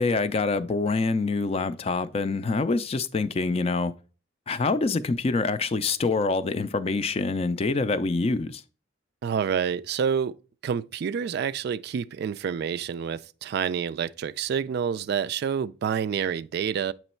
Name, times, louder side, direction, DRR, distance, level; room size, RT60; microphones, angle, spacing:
voice 1, 0.0-3.9 4.5-8.6, left 3 dB, 30° left, 0.4 m, -25 dB
voice 2, 9.2-10.4 10.6-16.9, right 7 dB, 55° right, 0.3 m, -28 dB
8.0 x 3.0 x 4.3 m
head